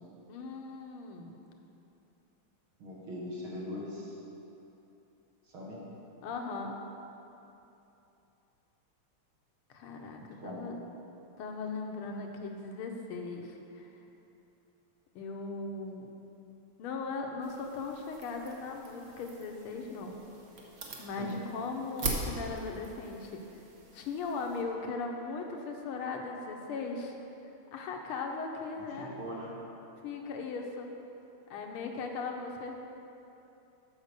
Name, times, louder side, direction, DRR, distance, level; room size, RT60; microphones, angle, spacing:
voice 1, 0.3-1.3 6.2-6.7 9.7-10.8 11.4-13.9 15.1-16.1 16.8-20.2 21.0-23.4 23.9-27.1 27.7-29.1 30.0-30.9 31.5-32.8, left 4 dB, 80° left, 2 dB, 1.7 m, -38 dB
voice 2, 2.8-4.2 5.4-5.8 10.4-10.6 21.2-21.3 28.8-29.5, left 1 dB, 70° right, -5 dB, 2.5 m, -41 dB
sound 1, 17.4-24.6, right 3 dB, 50° right, 1.2 m, -42 dB
8.0 x 5.5 x 6.6 m, 2.9 s
omnidirectional pair, 2.4 m